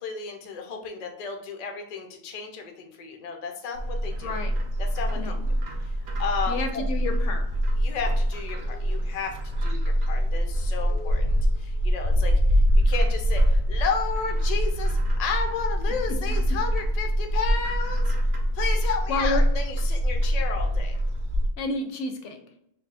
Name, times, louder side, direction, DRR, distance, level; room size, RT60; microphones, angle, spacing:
voice 1, 0.0-4.3 4.8-5.3 5.8-6.8 7.8-18.1 18.5-21.0, left 5 dB, 50° left, 3 dB, 0.5 m, -33 dB
Bird, 3.7-21.5, equal, 50° right, 0.7 m, -24 dB
voice 2, 4.2-4.5 5.2-5.5 6.5-7.5 16.2-16.6 19.1-19.4 21.6-22.4, left 3 dB, 70° left, 6 dB, 0.9 m, -30 dB
4.4 x 2.2 x 3.3 m, 0.76 s
omnidirectional pair, 1.3 m